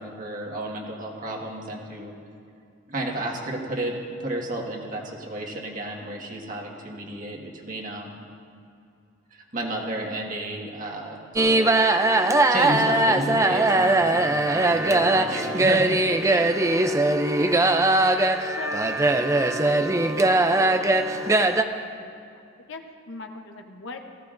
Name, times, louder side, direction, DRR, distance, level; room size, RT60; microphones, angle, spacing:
voice 1, 0.0-2.1 2.9-8.3 9.3-11.2 12.5-15.9, right 1 dB, 40° right, -1 dB, 1.6 m, -32 dB
sound 1, 11.4-21.6, right 2 dB, 15° right, 0.4 m, -20 dB
voice 2, 18.5-19.2 19.6-19.8 21.9-22.1 22.7-24.0, left 3 dB, 60° left, 5 dB, 0.9 m, -40 dB
18.5 x 15.5 x 2.6 m, 2.5 s
head